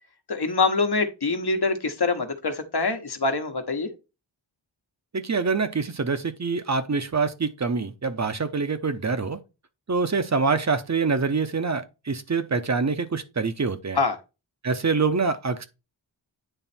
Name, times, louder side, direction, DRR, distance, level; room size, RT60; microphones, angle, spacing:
voice 1, 0.3-3.9 14.0-14.2, left 4 dB, 55° left, 1.2 m, -24 dB
voice 2, 5.1-9.4 9.9-14.0 14.6-15.7, right 4 dB, 35° right, 0.8 m, -25 dB
9.0 x 3.2 x 4.3 m
wide cardioid pair, 65°, 46 cm